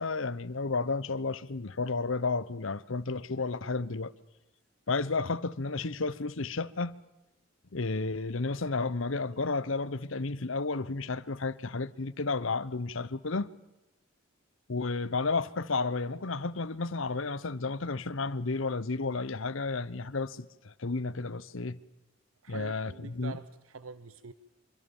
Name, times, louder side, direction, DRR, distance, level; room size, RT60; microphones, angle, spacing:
voice 1, 0.0-4.1 4.9-7.0 7.7-13.5 14.7-21.8 22.5-23.4, left 3 dB, 75° left, 0.9 m, -32 dB
voice 2, 22.4-24.3, right 4 dB, 85° right, 0.9 m, -45 dB
26.0 x 24.0 x 7.2 m
head